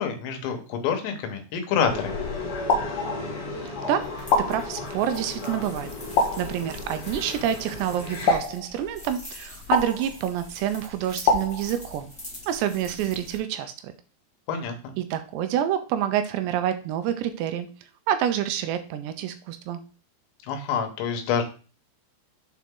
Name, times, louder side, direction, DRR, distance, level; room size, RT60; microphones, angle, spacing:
voice 1, 0.0-2.2 14.5-14.9 20.5-21.4, left 7 dB, 80° left, 5 dB, 3.4 m, -27 dB
sound 1, 1.9-8.4, left 3 dB, 40° left, 3.6 m, -35 dB
sound 2, 2.7-3.6 4.3-5.2 6.2-7.0 8.3-9.2 9.7-10.5 11.3-12.3, left 3 dB, 60° left, 2.2 m, -27 dB
voice 2, 3.7-4.1 4.5-5.9 6.4-12.1 12.5-13.9 15.0-17.7 18.1-19.8, right 10 dB, 85° right, 9 dB, 2.7 m, -27 dB
sound 3, 4.0-13.4, left 2 dB, 5° left, 0.8 m, -44 dB
8.3 x 4.2 x 3.7 m, 0.36 s
omnidirectional pair, 5.1 m